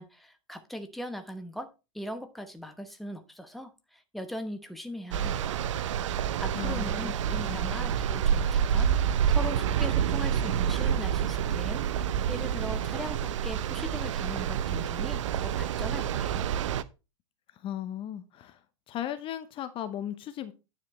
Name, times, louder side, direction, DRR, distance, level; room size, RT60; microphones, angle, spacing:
voice 1, 0.0-1.7 1.9-5.5 6.4-16.5, equal, ahead, 1.0 m, -40 dB
sound 1, 5.1-16.8, right 8 dB, 65° right, 0.6 m, -28 dB
voice 2, 6.5-7.1 7.4-7.8 17.6-18.6 18.9-20.5, left 11 dB, 30° left, 0.8 m, -36 dB
9.5 x 7.4 x 3.1 m
figure-of-eight pair, 100°, 17 cm